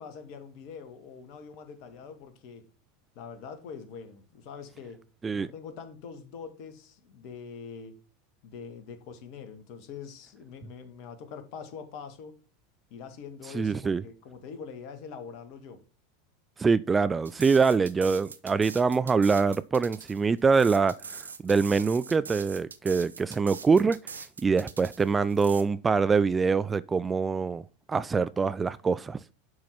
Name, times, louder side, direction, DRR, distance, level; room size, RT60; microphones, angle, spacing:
voice 1, 0.0-2.7 3.2-5.0 5.3-8.0 8.4-12.4 12.9-15.8, left 6 dB, 45° left, 1.8 m, -44 dB
voice 2, 13.5-14.0 16.6-27.6 27.9-29.2, right 5 dB, 15° right, 0.3 m, -24 dB
sound 1, 17.2-25.6, right 5 dB, 75° right, 0.8 m, -43 dB
11.0 x 4.7 x 5.8 m
figure-of-eight pair, 85°, 0 cm